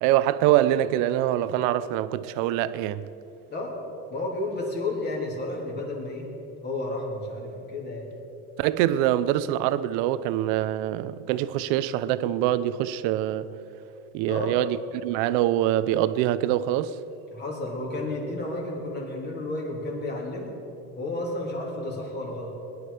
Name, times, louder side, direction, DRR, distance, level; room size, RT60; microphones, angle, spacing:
voice 1, 0.0-3.0 8.6-13.5 14.1-17.0, right 13 dB, 65° right, 0.7 m, -24 dB
voice 2, 4.1-6.3 6.6-8.1 14.3-14.5 17.3-20.5 20.9-22.5, left 2 dB, 30° left, 3.2 m, -32 dB
21.0 x 11.0 x 5.0 m
cardioid pair, 150°, 35 cm